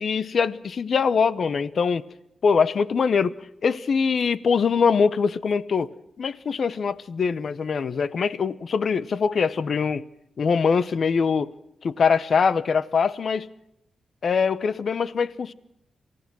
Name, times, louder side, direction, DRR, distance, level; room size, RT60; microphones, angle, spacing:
voice 1, 0.0-2.0 2.4-3.3 3.6-5.9 6.2-10.0 10.4-11.5 11.8-13.5 14.2-15.5, left 5 dB, 50° left, 0.7 m, -23 dB
27.5 x 15.5 x 6.1 m
wide cardioid pair, 150°, 0 cm